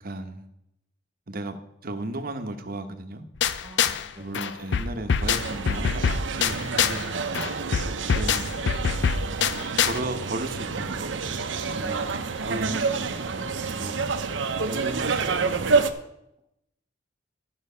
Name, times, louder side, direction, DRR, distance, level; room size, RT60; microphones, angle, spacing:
voice 1, 0.0-0.5 1.3-1.6 1.8-3.2 4.2-7.1 8.1-8.5 9.9-11.1 11.7-12.1 12.4-14.0 14.7-15.8, right 2 dB, 50° right, 7 dB, 0.9 m, -35 dB
sound 1, 3.4-4.1 4.3-7.1 7.3-10.0, left 6 dB, 70° left, 0.5 m, -25 dB
voice 2, 3.6-4.6 7.5-8.1 11.9-12.6, right 1 dB, 20° right, 0 dB, 1.7 m, -47 dB
sound 2, 5.2-15.9, right 4 dB, 85° right, 0.7 m, -28 dB
12.0 x 6.0 x 5.5 m, 0.82 s
head